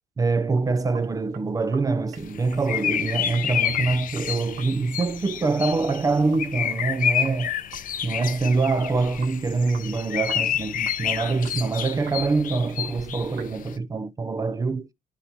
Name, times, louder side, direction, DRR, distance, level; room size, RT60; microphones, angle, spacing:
voice 1, 0.2-7.5 8.0-14.9, right 3 dB, 20° right, 0.5 m, -25 dB
Sink (filling or washing), 0.7-13.6, right 6 dB, 80° right, 1.3 m, -48 dB
sound 1, 2.2-13.8, left 9 dB, 55° left, 0.7 m, -29 dB
12.5 x 4.3 x 2.7 m
cardioid pair, 110°, 17 cm